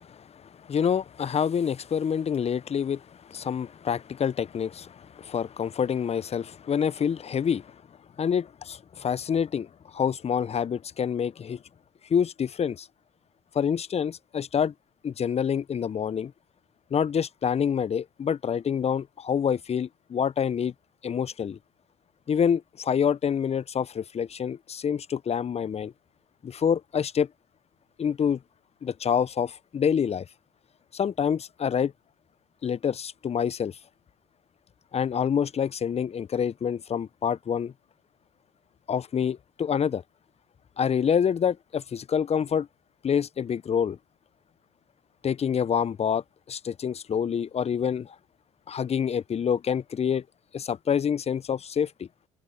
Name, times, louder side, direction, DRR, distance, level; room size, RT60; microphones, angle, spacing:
voice 1, 0.0-7.7 8.2-11.6 12.1-12.9 13.5-14.7 15.0-16.3 16.9-20.7 21.0-21.6 22.3-25.9 26.4-27.3 28.0-28.4 28.8-30.3 30.9-31.9 32.6-33.8 34.9-37.7 38.9-40.0 40.8-42.7 43.0-44.0 45.2-48.2 48.7-50.2 50.5-52.1, left 7 dB, 35° left, 1.1 m, -27 dB
hypercardioid pair, 55°, 17 cm